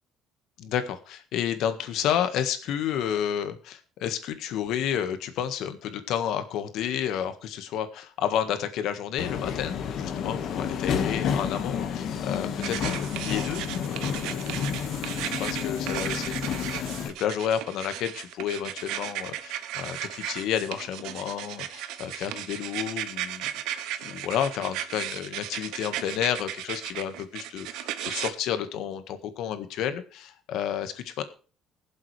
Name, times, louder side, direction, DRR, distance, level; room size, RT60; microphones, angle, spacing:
voice 1, 0.6-14.4 15.0-31.2, left 9 dB, 70° left, 9 dB, 1.6 m, -31 dB
Subway metro underground, 9.2-17.1, left 7 dB, 55° left, 1.7 m, -30 dB
sound 1, 12.6-28.3, right 12 dB, 85° right, 0.9 m, -35 dB
21.5 x 7.5 x 3.3 m, 0.38 s
cardioid pair, 130°, 0 cm